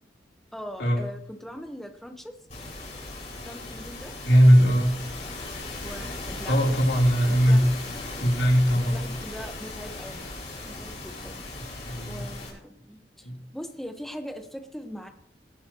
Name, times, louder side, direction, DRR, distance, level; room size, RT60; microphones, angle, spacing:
voice 1, 0.5-2.3 3.4-4.1 5.8-6.6 7.2-7.6 8.9-10.3 10.7-11.4 12.1-15.1, equal, ahead, 5 dB, 1.1 m, -41 dB
sound 1, 2.5-12.5, left 2 dB, 40° left, 5.7 m, -37 dB
voice 2, 4.2-5.0 6.5-7.7 8.2-9.1 11.8-12.3 13.2-13.4, equal, 85° left, -1 dB, 3.5 m, -19 dB
19.5 x 12.0 x 3.0 m, 0.63 s
head